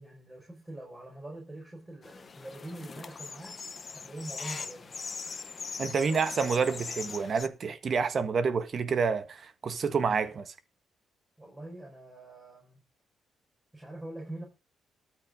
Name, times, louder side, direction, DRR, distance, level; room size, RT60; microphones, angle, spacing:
voice 1, 0.0-3.6 3.9-4.9 11.4-12.8 13.7-14.4, right 1 dB, 15° right, 4.7 m, -44 dB
sound 1, 2.0-7.5, left 5 dB, 35° left, 0.8 m, -41 dB
voice 2, 5.8-10.5, right 5 dB, 50° right, 1.4 m, -28 dB
13.0 x 6.3 x 5.0 m
cardioid pair, 90°, 0 cm